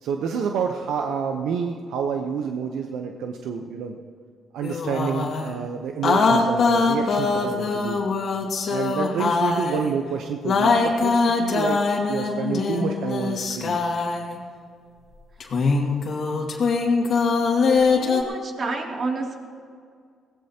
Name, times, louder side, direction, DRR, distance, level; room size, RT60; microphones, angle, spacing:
voice 1, 0.0-4.0 4.5-8.0 8.7-11.8 12.1-13.8, right 6 dB, 85° right, 4 dB, 0.8 m, -28 dB
sound 1, 4.6-5.5 6.0-9.9 10.4-14.4 15.4-18.2, left 4 dB, 60° left, 2.2 m, -22 dB
voice 2, 18.0-19.4, right 3 dB, 50° right, 0 dB, 2.8 m, -29 dB
22.0 x 17.0 x 2.9 m, 2.2 s
cardioid pair, 90°, 0 cm